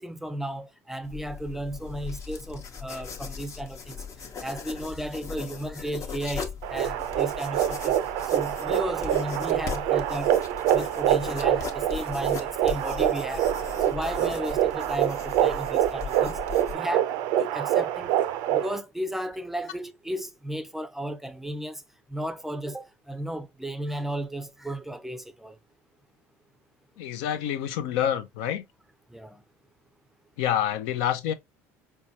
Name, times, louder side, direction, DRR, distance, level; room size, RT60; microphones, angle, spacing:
voice 1, 0.0-4.0 4.4-10.4 10.7-16.4 16.7-17.1 17.4-18.2 18.5-21.8 22.1-25.6 29.1-29.4, right 1 dB, 5° right, 0.5 m, -34 dB
sound 1, 1.0-16.7, left 6 dB, 45° left, 0.8 m, -38 dB
sound 2, 6.6-18.8, right 11 dB, 70° right, 0.4 m, -26 dB
voice 2, 27.0-28.6 30.4-31.3, left 10 dB, 75° left, 0.5 m, -27 dB
4.4 x 2.2 x 2.7 m
hypercardioid pair, 80°, 8 cm